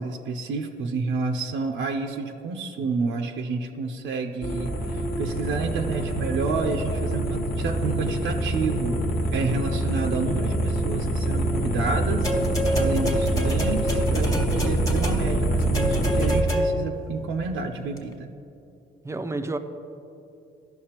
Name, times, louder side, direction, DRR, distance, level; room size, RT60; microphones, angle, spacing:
voice 1, 0.0-9.0 9.3-12.3 12.8-18.3, right 4 dB, 80° right, 0.6 m, -29 dB
sound 1, 4.4-16.4, right 1 dB, 45° left, 1.0 m, -25 dB
sound 2, 12.2-17.0 18.0-18.1, left 1 dB, 20° left, 1.3 m, -28 dB
voice 2, 19.0-19.6, right 2 dB, 15° right, 0.5 m, -30 dB
14.0 x 5.9 x 2.9 m
cardioid pair, 90°, 20 cm